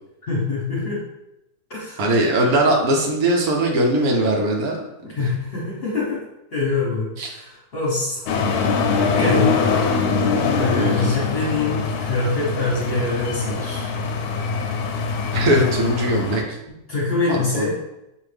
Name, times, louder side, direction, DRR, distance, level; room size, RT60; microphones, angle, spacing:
voice 1, 0.3-1.0 1.7-2.1 5.0-6.2 6.5-8.2 8.5-9.5 10.5-13.9 16.9-17.8, left 3 dB, 45° left, -4 dB, 1.0 m, -25 dB
voice 2, 2.0-4.8 7.2-7.3 9.2-9.5 10.8-11.0 15.3-16.4 17.3-17.7, right 1 dB, 70° right, 1 dB, 1.1 m, -20 dB
sound 1, 8.3-16.4, left 5 dB, 75° left, 1.0 m, -23 dB
5.6 x 2.5 x 3.3 m, 0.89 s
omnidirectional pair, 1.7 m